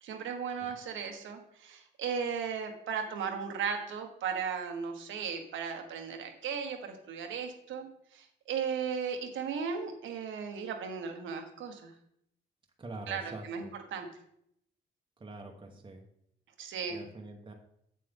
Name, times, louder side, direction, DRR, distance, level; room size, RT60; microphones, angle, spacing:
voice 1, 0.0-7.9 8.1-11.9 13.1-14.1 16.6-17.0, right 6 dB, 75° right, 4 dB, 1.4 m, -36 dB
voice 2, 12.8-13.7 15.2-16.0 16.9-17.5, right 2 dB, 25° right, 2 dB, 1.1 m, -45 dB
7.7 x 7.5 x 3.5 m, 0.73 s
cardioid pair, 90°, 20 cm